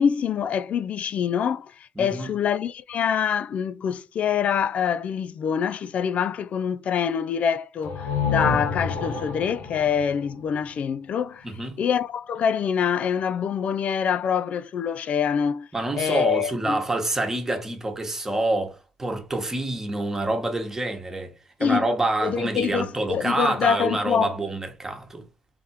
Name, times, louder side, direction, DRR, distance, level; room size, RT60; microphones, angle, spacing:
voice 1, 0.0-11.5 11.8-15.7 15.9-16.8 21.6-21.9 22.2-24.4, left 8 dB, 45° left, 0.4 m, -25 dB
voice 2, 2.0-2.3 11.4-11.8 15.7-21.3 21.6-25.2, right 2 dB, 15° right, 1.2 m, -27 dB
sound 1, 7.8-11.5, left 4 dB, 85° left, 1.9 m, -30 dB
3.6 x 3.4 x 4.3 m
cardioid pair, 125°, 3 cm